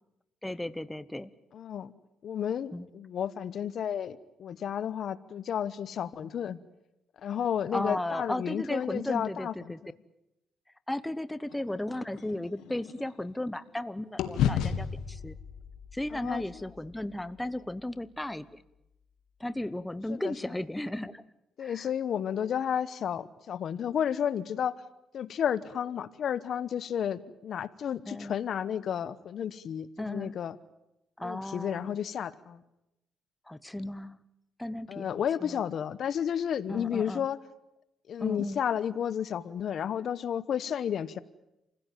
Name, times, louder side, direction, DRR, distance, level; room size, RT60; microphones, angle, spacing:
voice 1, 0.4-1.3 2.7-2.9 7.7-9.8 10.9-15.4 15.9-18.6 19.4-21.2 21.6-21.9 28.1-28.4 30.0-30.4 31.2-31.9 33.5-34.2 34.6-35.6 36.7-37.3 38.2-38.6, left 1 dB, 10° left, 14 dB, 0.9 m, -35 dB
voice 2, 1.5-1.9 2.2-6.6 7.2-9.9 16.1-16.4 20.1-20.3 21.6-24.8 25.1-30.6 31.2-32.6 34.9-37.4 38.1-41.2, left 8 dB, 65° left, 16 dB, 1.0 m, -32 dB
sound 1, 11.5-13.8 14.2-18.4, left 9 dB, 85° left, 1.8 m, -35 dB
27.5 x 16.5 x 9.2 m, 0.90 s
cardioid pair, 90°, 0 cm